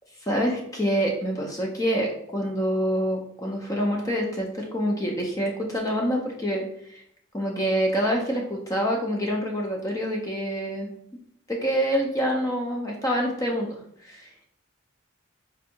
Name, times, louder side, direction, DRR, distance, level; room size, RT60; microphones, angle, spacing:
voice 1, 0.2-7.0 7.3-10.9 11.5-13.8 14.0-14.3, equal, 15° left, 0 dB, 0.4 m, -26 dB
4.3 x 2.6 x 2.7 m, 0.70 s
head